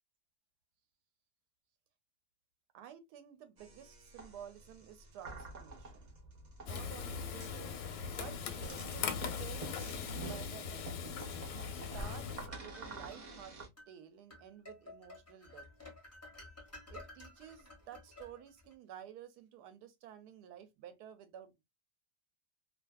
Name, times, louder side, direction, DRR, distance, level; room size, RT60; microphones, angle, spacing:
voice 1, 2.7-6.1 6.6-7.8 8.1-11.0 11.5-15.7 16.9-21.6, right 9 dB, 75° right, 1.1 m, -52 dB
sound 1, 3.6-13.7, right 2 dB, 55° right, 0.5 m, -49 dB
Frying (food), 6.7-12.5, left 6 dB, 90° left, 1.3 m, -40 dB
sound 2, 12.3-13.2 13.8-13.9 14.3-18.7, left 2 dB, 15° left, 0.6 m, -53 dB
2.7 x 2.5 x 2.2 m
omnidirectional pair, 1.8 m